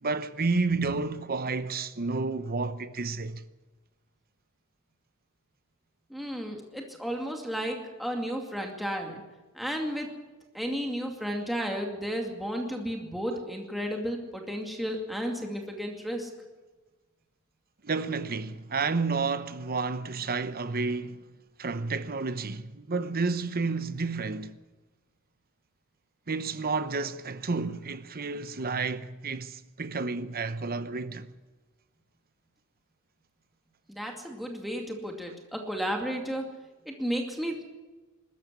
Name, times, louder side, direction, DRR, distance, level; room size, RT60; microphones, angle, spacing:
voice 1, 0.0-3.4 17.8-21.2 21.6-24.6 26.3-31.3, right 4 dB, 45° right, 0.9 m, -31 dB
voice 2, 6.1-9.2 9.5-10.1 10.5-16.3 33.9-36.4 36.8-37.6, equal, ahead, 2.4 m, -33 dB
21.5 x 13.5 x 9.7 m
head